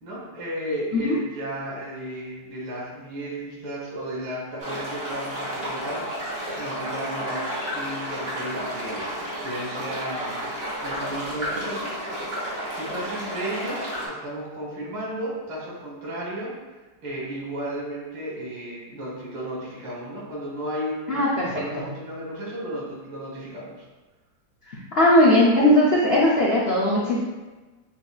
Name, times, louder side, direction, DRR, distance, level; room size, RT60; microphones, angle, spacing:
voice 1, 0.0-10.5 10.8-11.9 12.7-16.5 17.0-23.9, right 1 dB, 85° right, -4 dB, 2.0 m, -34 dB
sound 1, 4.6-14.1, equal, 35° right, 1.4 m, -32 dB
voice 2, 21.1-21.5 24.7-27.2, left 1 dB, 90° left, -6 dB, 0.5 m, -19 dB
6.8 x 2.7 x 2.4 m, 1.2 s
omnidirectional pair, 2.0 m